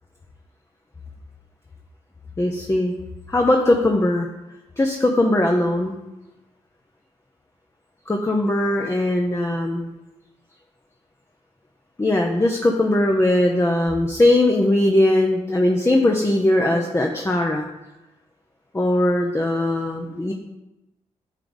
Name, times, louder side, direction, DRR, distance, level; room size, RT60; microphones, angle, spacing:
voice 1, 2.4-2.9 3.3-4.3 4.8-5.9 8.1-9.9 12.0-17.6 18.7-20.3, left 1 dB, 20° left, 1 dB, 0.8 m, -20 dB
9.0 x 3.4 x 3.9 m, 0.98 s
supercardioid pair, 50°, 13 cm